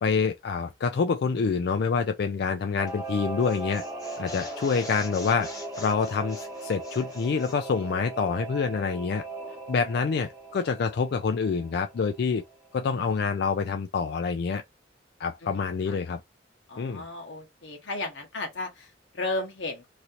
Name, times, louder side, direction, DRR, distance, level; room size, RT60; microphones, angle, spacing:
voice 1, 0.0-3.8 4.2-5.5 5.8-9.2 9.7-12.4 12.7-14.6 15.2-16.2 16.8-17.0, left 5 dB, 60° left, 0.4 m, -27 dB
Singing / Musical instrument, 2.8-12.8 13.1-13.2, right 2 dB, 20° right, 1.0 m, -39 dB
sound 1, 2.9-3.1 3.4-7.6, left 3 dB, 20° left, 1.2 m, -45 dB
voice 2, 15.4-16.0 16.7-19.9, left 2 dB, 90° left, 1.2 m, -35 dB
3.1 x 2.8 x 2.5 m
head